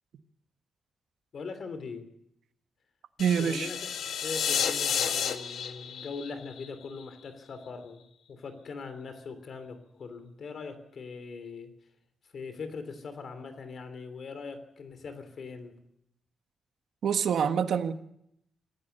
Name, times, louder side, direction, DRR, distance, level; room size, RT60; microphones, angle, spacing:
voice 1, 1.3-2.1 3.4-11.7 12.3-15.8, left 4 dB, 50° left, 3.1 m, -41 dB
sound 1, 3.2-7.3, left 8 dB, 85° left, 1.7 m, -31 dB
voice 2, 3.2-3.7 17.0-17.9, right 7 dB, 70° right, 1.4 m, -26 dB
25.5 x 15.5 x 6.7 m
wide cardioid pair, 155°, 0 cm